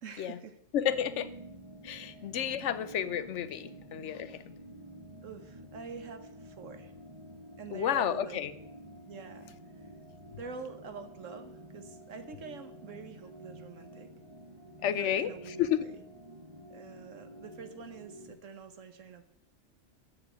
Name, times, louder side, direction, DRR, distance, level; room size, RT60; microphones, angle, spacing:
voice 1, 0.0-0.6 2.0-2.2 2.5-2.7 3.7-3.9 5.2-6.9 7.6-8.4 9.1-9.9 10.3-14.1 15.0-16.0 16.7-19.2, right 5 dB, 80° right, 9 dB, 1.4 m, -46 dB
voice 2, 0.7-1.3 1.8-4.5 7.7-8.5 14.8-15.9, left 9 dB, 70° left, 15 dB, 0.9 m, -31 dB
sound 1, 0.9-18.4, right 1 dB, 20° right, 1.0 m, -50 dB
8.5 x 6.9 x 8.2 m, 0.77 s
omnidirectional pair, 1.3 m